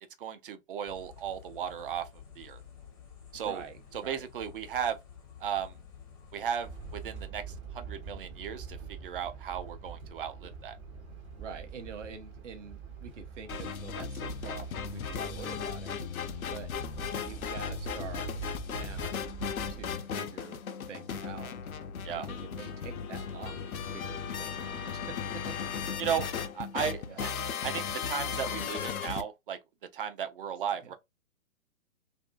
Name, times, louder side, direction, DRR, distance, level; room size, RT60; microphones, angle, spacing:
voice 1, 0.2-2.1 2.4-2.6 3.3-3.6 3.9-5.0 5.4-5.8 6.3-10.8 22.0-22.3 26.0-26.3 26.5-29.6 29.9-30.9, right 8 dB, 40° right, 0.4 m, -35 dB
sound 1, 0.8-7.3, left 7 dB, 10° left, 0.5 m, -51 dB
voice 2, 3.4-4.3 11.4-15.9 16.5-16.7 17.1-19.2 19.7-20.6 20.9-21.6 22.2-25.7 26.0-26.2 27.1-27.2 30.8-30.9, right 6 dB, 60° right, 0.8 m, -46 dB
sound 2, 6.6-20.0, right 6 dB, 25° right, 1.1 m, -45 dB
sound 3, 13.5-29.2, left 6 dB, 90° left, 0.5 m, -36 dB
2.6 x 2.5 x 2.2 m
figure-of-eight pair, 130°, 41 cm